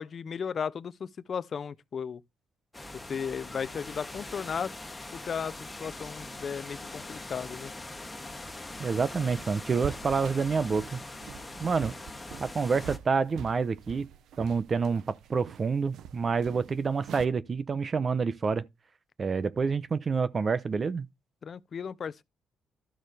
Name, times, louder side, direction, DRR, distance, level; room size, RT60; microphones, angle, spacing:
voice 1, 0.0-2.2 3.1-4.7 5.1-7.7 21.4-22.2, left 7 dB, 50° left, 0.6 m, -35 dB
sound 1, 2.7-13.0, left 2 dB, 15° left, 1.5 m, -42 dB
voice 2, 8.8-11.0 11.6-11.9 12.4-14.1 14.4-18.6 19.2-21.1, right 5 dB, 40° right, 0.8 m, -28 dB
sound 2, 9.7-17.3, right 10 dB, 75° right, 0.8 m, -45 dB
12.5 x 6.4 x 3.4 m
cardioid pair, 90°, 0 cm